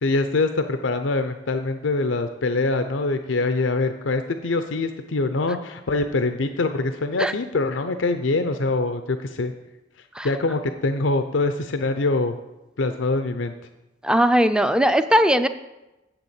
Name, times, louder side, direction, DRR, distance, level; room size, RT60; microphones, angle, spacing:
voice 1, 0.0-9.5 10.2-12.3 12.8-13.5, left 3 dB, 85° left, 8 dB, 0.6 m, -24 dB
voice 2, 14.0-15.5, equal, 5° right, 10 dB, 0.5 m, -18 dB
7.8 x 7.0 x 8.1 m, 0.99 s
head